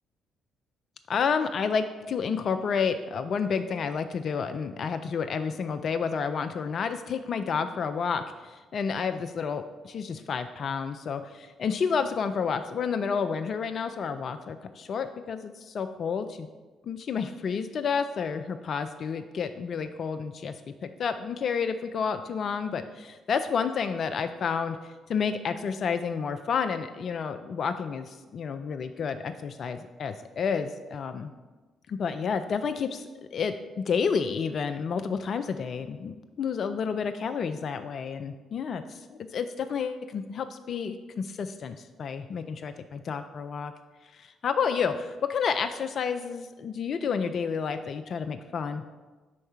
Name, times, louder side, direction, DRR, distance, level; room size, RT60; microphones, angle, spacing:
voice 1, 1.1-16.5 16.8-20.5 20.8-24.8 25.1-31.3 31.9-43.7 44.1-48.8, left 6 dB, 50° left, 9 dB, 0.3 m, -30 dB
5.4 x 4.5 x 5.6 m, 1.3 s
figure-of-eight pair, 40°, 0 cm